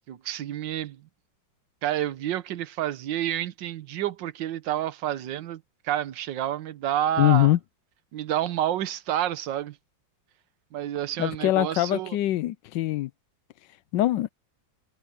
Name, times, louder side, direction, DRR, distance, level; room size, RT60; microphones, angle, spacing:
voice 1, 0.1-1.0 1.8-7.5 8.1-9.8 10.7-12.2, right 11 dB, 65° right, 1.6 m, -29 dB
voice 2, 7.2-7.6 11.2-13.1 13.9-14.3, left 15 dB, 75° left, 1.1 m, -23 dB
omnidirectional pair, 2.2 m